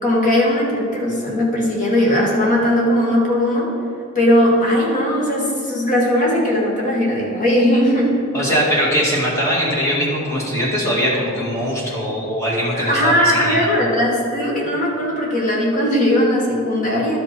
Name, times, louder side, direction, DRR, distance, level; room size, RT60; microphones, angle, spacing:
voice 1, 0.0-3.7 4.2-8.2 12.7-17.2, left 1 dB, 40° left, -3 dB, 1.8 m, -18 dB
voice 2, 8.3-13.6, equal, 15° left, -6 dB, 2.0 m, -21 dB
11.5 x 5.3 x 4.4 m, 2.3 s
head